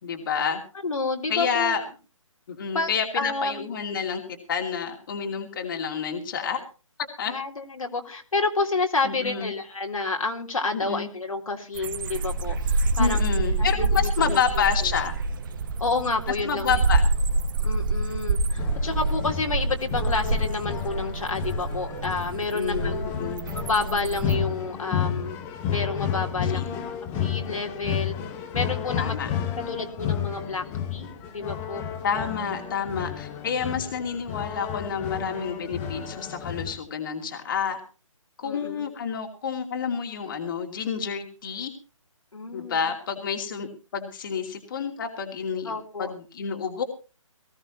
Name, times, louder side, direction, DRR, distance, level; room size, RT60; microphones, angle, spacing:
voice 1, 0.0-0.6 1.3-1.8 2.5-6.6 7.2-7.3 9.0-9.5 10.7-11.1 13.0-15.1 16.4-17.0 22.3-23.5 26.4-26.8 29.0-29.3 32.0-37.8 38.4-41.7 42.5-46.8, left 6 dB, 40° left, 3 dB, 2.7 m, -29 dB
voice 2, 0.8-1.8 2.7-2.9 3.1-3.7 7.3-13.2 13.6-14.4 15.8-16.7 17.6-23.1 23.5-25.4 25.7-26.6 27.1-28.1 28.5-29.1 29.7-30.6 30.9-31.8 33.6-33.9 38.4-39.0 42.3-42.9 45.6-46.1, left 3 dB, 80° left, 2 dB, 3.7 m, -29 dB
sound 1, 11.7-24.4, right 2 dB, 40° right, 1.9 m, -27 dB
sound 2, 18.6-36.8, left 8 dB, 15° left, 1.3 m, -32 dB
19.5 x 16.0 x 3.0 m, 0.34 s
hypercardioid pair, 160°, 17 cm